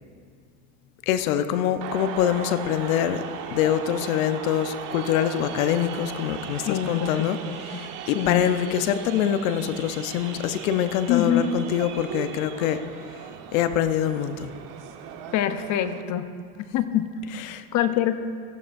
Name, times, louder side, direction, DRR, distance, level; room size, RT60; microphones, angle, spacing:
voice 1, 1.1-3.2 3.5-12.8 13.5-14.5 17.3-17.6, left 10 dB, 70° left, 10 dB, 1.0 m, -25 dB
sound 1, 1.8-16.0, right 8 dB, 45° right, 1.3 m, -38 dB
voice 2, 6.7-7.9 8.1-8.5 11.1-11.4 15.3-16.3 16.7-17.1 17.7-18.2, left 11 dB, 40° left, 10 dB, 0.9 m, -25 dB
17.5 x 14.5 x 2.6 m, 2.1 s
hypercardioid pair, 105°, 43 cm